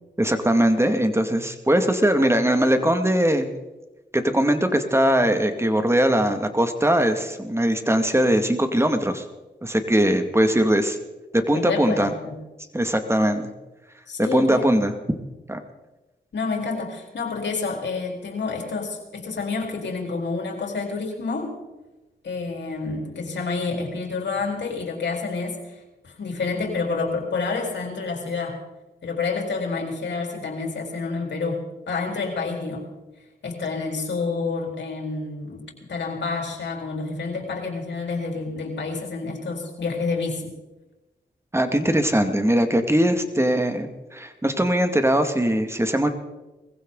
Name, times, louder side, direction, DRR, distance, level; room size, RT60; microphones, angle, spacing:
voice 1, 0.2-3.5 4.1-9.2 9.6-11.0 11.3-12.1 12.7-13.5 14.2-14.9 15.5-15.6 41.5-46.1, right 1 dB, 15° right, 7 dB, 2.3 m, -21 dB
voice 2, 11.5-12.3 14.1-14.7 16.3-21.5 22.2-25.8 26.0-28.6 29.0-32.9 33.4-35.6 35.9-40.5, left 4 dB, 75° left, 1 dB, 4.3 m, -28 dB
21.0 x 15.5 x 4.0 m, 1.1 s
cardioid pair, 50°, 18 cm